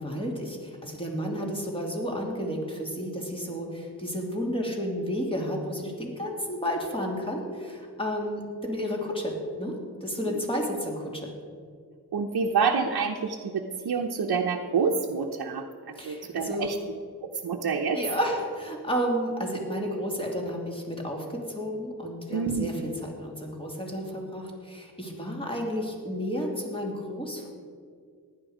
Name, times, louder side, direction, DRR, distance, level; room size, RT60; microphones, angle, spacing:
voice 1, 0.0-11.3 16.0-16.7 17.9-27.5, equal, 15° left, -1 dB, 2.8 m, -32 dB
voice 2, 12.1-15.6 16.0-16.8 17.4-18.0 22.3-22.7, right 5 dB, 70° right, 0 dB, 1.0 m, -27 dB
15.5 x 11.5 x 5.0 m, 2.1 s
wide cardioid pair, 95°, 38 cm